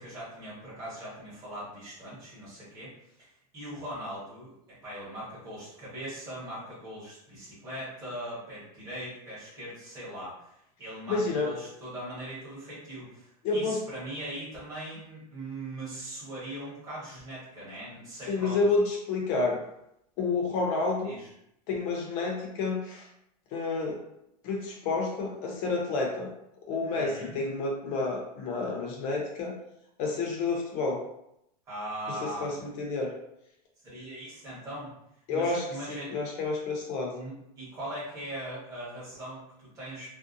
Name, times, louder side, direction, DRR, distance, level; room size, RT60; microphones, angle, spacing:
voice 1, 0.0-2.9 3.2-18.6 21.0-21.3 26.9-27.4 31.7-32.6 33.8-34.9 35.3-36.1 37.1-40.1, right 1 dB, 15° right, -10 dB, 1.1 m, -40 dB
voice 2, 11.1-11.5 13.4-13.8 18.3-19.6 20.2-21.1 21.7-23.0 23.5-24.0 24.4-26.3 26.7-29.6 30.0-31.0 32.2-33.1 35.3-37.2, left 3 dB, 35° left, 0 dB, 0.6 m, -29 dB
2.6 x 2.1 x 2.5 m, 0.78 s
supercardioid pair, 170°, 20 cm